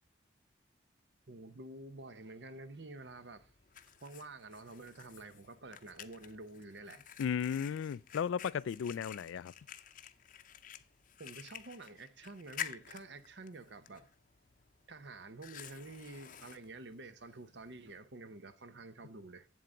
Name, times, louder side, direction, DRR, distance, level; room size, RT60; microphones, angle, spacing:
voice 1, 1.3-3.5 4.0-7.1 11.2-14.1 14.9-19.5, right 2 dB, 65° right, 0.8 m, -49 dB
Fire, 3.0-18.0, left 9 dB, 45° left, 0.6 m, -51 dB
voice 2, 7.2-9.5, left 7 dB, 85° left, 0.3 m, -35 dB
7.9 x 7.6 x 3.8 m
head